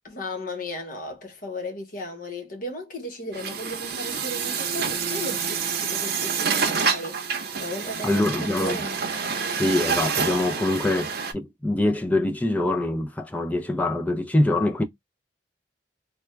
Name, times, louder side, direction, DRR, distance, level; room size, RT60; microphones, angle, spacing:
voice 1, 0.0-7.2 7.6-9.0, left 1 dB, 50° left, 1.1 m, -35 dB
Truck, 3.3-11.3, right 6 dB, 60° right, 0.7 m, -28 dB
voice 2, 8.0-8.8 9.6-14.8, left 2 dB, 10° left, 0.4 m, -24 dB
3.5 x 2.2 x 3.1 m
head